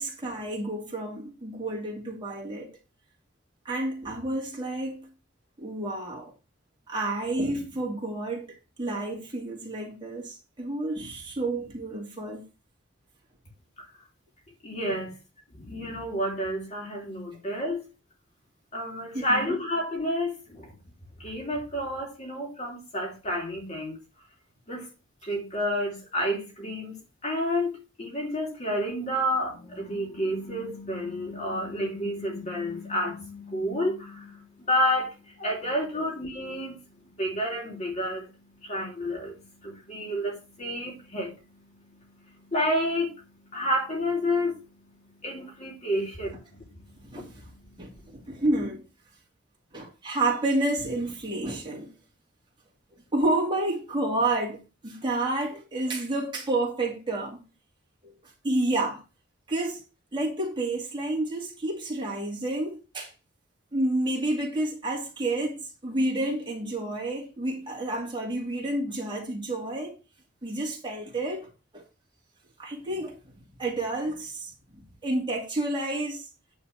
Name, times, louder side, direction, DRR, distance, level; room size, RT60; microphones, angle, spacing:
voice 1, 0.0-2.7 3.6-5.1 5.6-6.3 6.9-12.4 19.1-19.6 47.0-47.5 47.8-48.8 49.7-51.9 53.1-57.4 58.0-58.1 58.4-59.0 59.5-59.8 60.1-63.1 63.7-69.9 70.4-71.8 72.6-73.2 73.6-74.5 75.0-76.3, right 2 dB, 25° right, 2.6 m, -30 dB
voice 2, 14.6-15.1 15.6-17.8 18.7-20.7 21.2-24.0 24.7-24.9 25.2-36.8 37.1-44.6 45.0-48.0 48.2-48.3, equal, 35° left, 2.8 m, -30 dB
9.6 x 4.2 x 5.8 m
head